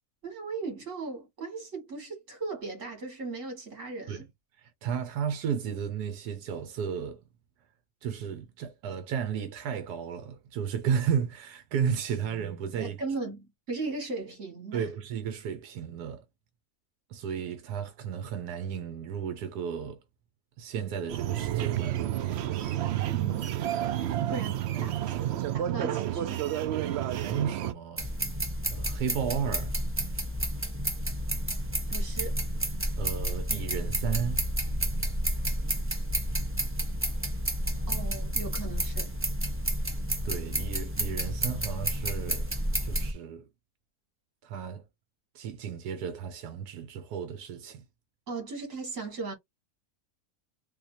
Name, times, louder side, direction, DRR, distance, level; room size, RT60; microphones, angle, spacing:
voice 1, 0.2-4.3 12.8-14.9 23.1-23.6 24.3-26.5 31.9-32.4 37.9-39.1 48.3-49.3, right 3 dB, 55° right, 2.1 m, -37 dB
voice 2, 4.6-7.2 8.0-13.0 14.7-16.2 17.1-20.0 20.6-22.2 24.7-24.9 26.7-28.1 28.7-29.8 33.0-34.5 40.2-42.5 42.8-43.5 44.4-44.8 45.3-47.8, right 7 dB, 85° right, 1.2 m, -33 dB
sound 1, 21.1-27.7, right 12 dB, 70° right, 0.6 m, -30 dB
sound 2, 28.0-43.1, equal, 15° right, 0.5 m, -30 dB
3.7 x 2.8 x 2.6 m
omnidirectional pair, 1.6 m